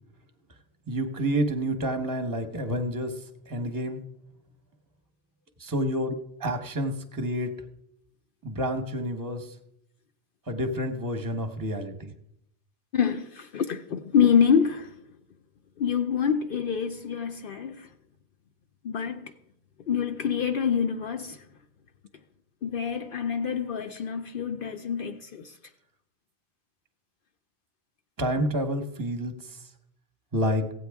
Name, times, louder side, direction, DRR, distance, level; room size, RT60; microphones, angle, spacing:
voice 1, 0.9-3.1 3.5-4.0 5.6-6.1 6.4-7.5 8.4-9.5 10.5-12.1 28.2-29.3 30.3-30.6, equal, 20° right, 0.9 m, -28 dB
voice 2, 12.9-14.9 15.8-17.9 18.8-19.3 19.9-21.4 22.6-25.5, left 7 dB, 65° left, 0.7 m, -26 dB
15.5 x 9.2 x 3.5 m
omnidirectional pair, 1.1 m